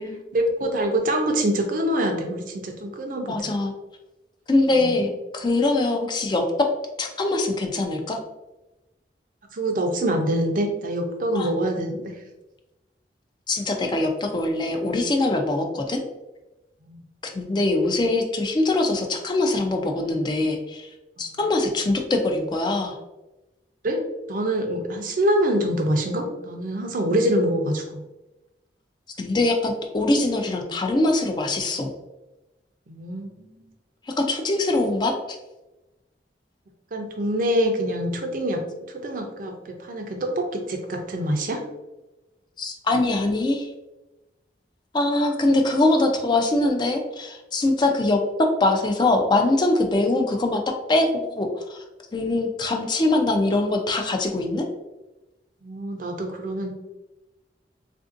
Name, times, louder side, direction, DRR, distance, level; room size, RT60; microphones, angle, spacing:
voice 1, 0.3-3.4 4.7-5.0 9.5-12.2 16.9-17.0 21.3-21.4 23.8-24.0 24.3-28.0 32.9-33.7 36.9-38.6 38.9-41.6 55.6-56.7, right 1 dB, 50° right, 3 dB, 0.5 m, -25 dB
voice 2, 3.3-3.7 4.5-6.4 7.0-8.2 11.3-11.5 13.5-16.0 17.2-20.9 21.2-23.0 29.2-31.9 34.2-35.1 42.6-43.7 44.9-48.2 48.6-51.8 52.1-54.7, left 2 dB, 25° left, 3 dB, 0.3 m, -23 dB
3.5 x 2.6 x 2.4 m, 1.0 s
head